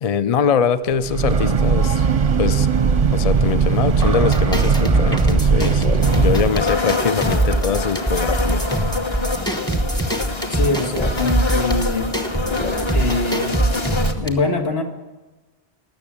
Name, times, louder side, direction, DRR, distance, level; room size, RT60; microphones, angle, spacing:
voice 1, 0.0-2.1 2.4-2.7 3.1-5.9 6.2-8.6, left 6 dB, 45° left, 14 dB, 0.5 m, -22 dB
Breathing / Train, 0.9-6.7, right 5 dB, 40° right, 0.6 m, -18 dB
sound 1, 4.0-14.3, right 1 dB, 5° left, 1.0 m, -23 dB
sound 2, 6.0-14.1, left 3 dB, 30° left, 1.0 m, -26 dB
voice 2, 10.5-12.1 12.9-13.6 14.2-14.8, left 3 dB, 80° left, 3 dB, 1.8 m, -23 dB
19.0 x 6.6 x 8.6 m, 1.2 s
omnidirectional pair, 1.1 m